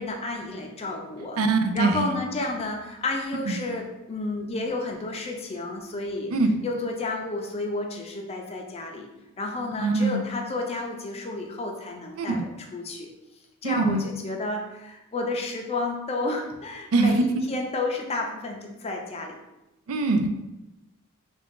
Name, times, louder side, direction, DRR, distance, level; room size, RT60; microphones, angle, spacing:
voice 1, 0.0-1.4 1.7-6.3 6.6-9.1 9.4-12.5 12.7-13.1 13.6-19.4, left 2 dB, 30° left, 1 dB, 0.5 m, -31 dB
voice 2, 1.4-2.1 3.5-3.6 6.3-6.5 9.8-10.2 12.2-12.4 13.6-14.0 16.9-17.4 19.9-20.3, right 3 dB, 80° right, 6 dB, 0.4 m, -23 dB
3.6 x 2.3 x 3.6 m, 0.97 s
head